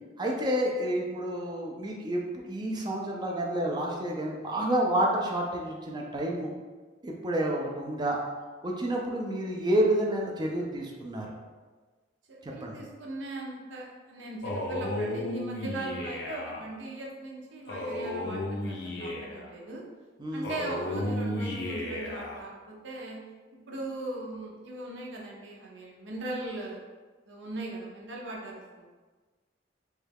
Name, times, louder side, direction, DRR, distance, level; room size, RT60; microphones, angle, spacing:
voice 1, 0.2-6.5 7.0-8.2 8.6-11.3 12.4-12.8 20.2-20.5, right 1 dB, 25° right, -1 dB, 0.4 m, -29 dB
voice 2, 12.3-19.8 20.3-23.2 23.7-26.8 27.3-28.9, right 2 dB, 75° right, -2 dB, 0.6 m, -39 dB
Male speech man speaking, 14.4-16.6 17.7-19.5 20.4-22.4, left 1 dB, 60° left, 0.5 m, -33 dB
3.1 x 2.3 x 3.3 m, 1.4 s
head